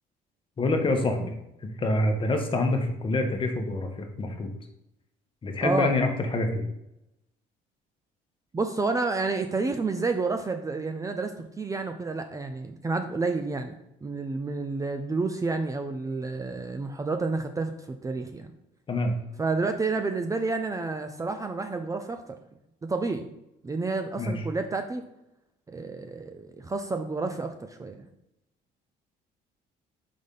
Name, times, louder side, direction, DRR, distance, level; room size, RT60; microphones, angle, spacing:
voice 1, 0.6-1.4 1.6-4.5 5.4-6.6 18.9-19.1 24.2-24.4, left 2 dB, 30° left, 4 dB, 1.1 m, -26 dB
voice 2, 5.6-6.0 8.5-18.5 19.4-22.4 22.8-23.3 23.6-25.0 25.7-28.1, right 3 dB, 20° right, 6 dB, 0.5 m, -30 dB
5.0 x 4.0 x 5.4 m, 0.87 s
cardioid pair, 110°, 17 cm